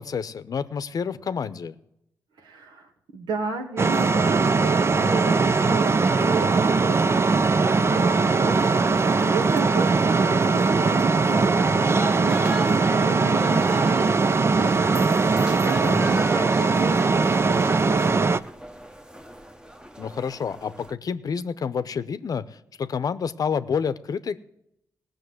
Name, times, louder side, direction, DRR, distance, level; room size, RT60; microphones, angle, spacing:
voice 1, 0.0-1.7 15.9-16.2 20.0-24.4, left 6 dB, 60° left, 14 dB, 0.7 m, -29 dB
voice 2, 2.4-18.4, right 3 dB, 85° right, 3 dB, 1.9 m, -34 dB
sound 1, 3.8-18.4, right 4 dB, 35° right, 0.5 m, -20 dB
sound 2, 8.8-20.9, equal, 10° right, 1.0 m, -39 dB
16.5 x 6.6 x 7.9 m, 0.80 s
cardioid pair, 60°, 7 cm